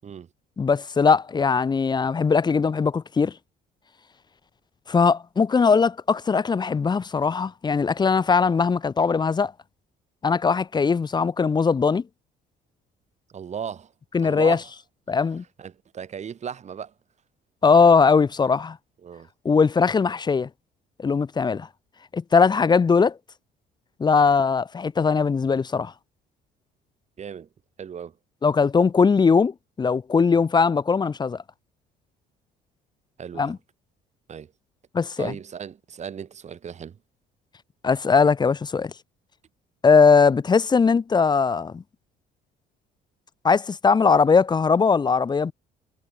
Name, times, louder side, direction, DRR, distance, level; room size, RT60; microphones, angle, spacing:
voice 1, 0.6-3.3 4.9-9.5 10.2-12.0 14.1-14.6 15.1-15.4 17.6-18.8 19.4-20.5 21.0-21.7 22.1-23.2 24.0-25.9 28.4-31.4 33.4-33.6 34.9-35.3 37.8-38.9 39.8-41.8 43.4-45.5, left 5 dB, 25° left, 0.9 m, -20 dB
voice 2, 13.3-13.9 14.2-14.7 15.6-16.9 19.0-19.3 27.2-27.5 27.8-28.2 33.2-33.5 34.3-34.5 35.2-37.0, right 7 dB, 40° right, 5.4 m, -36 dB
cardioid pair, 110°, 17 cm